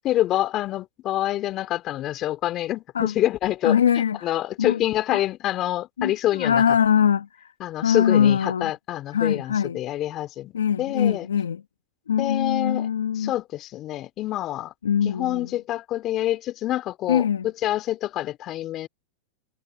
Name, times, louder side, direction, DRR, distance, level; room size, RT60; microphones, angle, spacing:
voice 1, 0.0-3.8 4.2-6.6 7.6-10.5 10.8-11.3 12.2-12.9 13.2-14.7 15.0-18.9, left 14 dB, 40° left, 2.8 m, -26 dB
voice 2, 3.6-4.8 5.1-5.2 6.0-7.5 7.8-8.7 9.1-9.8 10.5-11.6 12.1-13.3 14.8-15.5 17.1-17.5, left 8 dB, 90° left, 1.5 m, -22 dB
hypercardioid pair, 105°, 0 cm